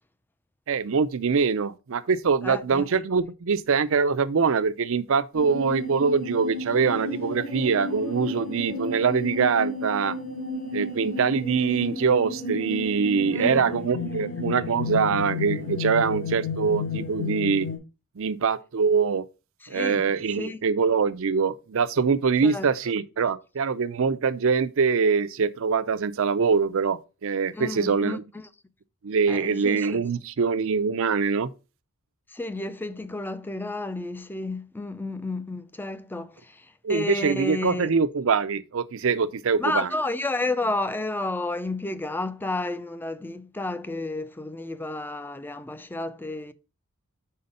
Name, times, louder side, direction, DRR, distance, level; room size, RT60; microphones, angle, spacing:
voice 1, 0.7-10.2 10.7-17.7 18.2-19.2 19.7-28.2 29.0-31.5 36.8-39.9, right 5 dB, 70° right, 0.5 m, -24 dB
voice 2, 2.4-2.9 13.3-13.7 19.7-20.6 22.4-22.7 27.5-28.5 29.3-30.0 32.3-37.9 39.6-46.5, left 2 dB, 10° left, 0.4 m, -31 dB
sound 1, 5.3-17.8, left 2 dB, 75° left, 2.2 m, -32 dB
5.6 x 4.3 x 5.2 m
head